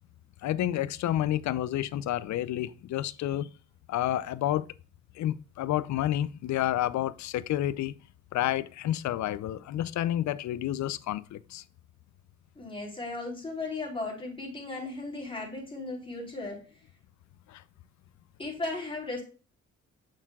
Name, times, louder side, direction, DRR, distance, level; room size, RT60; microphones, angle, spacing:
voice 1, 0.4-3.5 3.9-4.7 5.2-7.9 8.3-11.6 17.5-17.6, left 13 dB, 70° left, 0.6 m, -30 dB
voice 2, 12.6-16.6 18.4-19.2, left 2 dB, 15° left, 3.8 m, -36 dB
7.4 x 6.6 x 2.3 m
cardioid pair, 90°, 30 cm